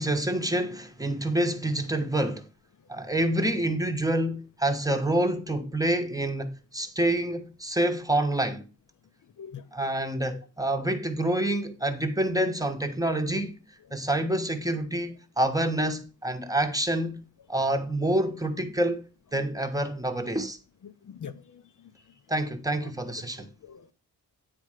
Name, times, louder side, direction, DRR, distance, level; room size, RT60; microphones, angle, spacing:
voice 1, 0.0-2.4 2.9-8.7 9.7-13.6 13.9-19.0 19.3-20.6 22.3-23.5, right 1 dB, 10° right, 1.0 m, -27 dB
voice 2, 20.8-21.6 23.4-23.9, left 7 dB, 60° left, 0.7 m, -43 dB
9.2 x 4.3 x 4.9 m
wide cardioid pair, 120°, 35 cm